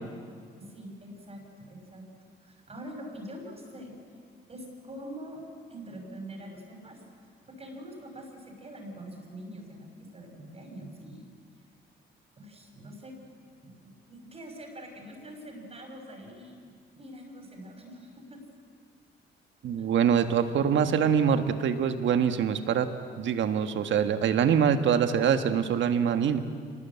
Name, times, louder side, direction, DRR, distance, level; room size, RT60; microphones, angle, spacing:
voice 1, 0.6-2.0 2.4-3.9 4.5-5.4 5.7-7.0 7.5-9.9 10.1-11.3 12.4-13.1 13.6-18.4 19.8-19.9, equal, 30° right, 2 dB, 6.1 m, -44 dB
voice 2, 19.6-22.9 23.2-26.4, right 8 dB, 70° right, 8 dB, 1.6 m, -24 dB
25.0 x 20.0 x 8.5 m, 2.1 s
cardioid pair, 90°, 20 cm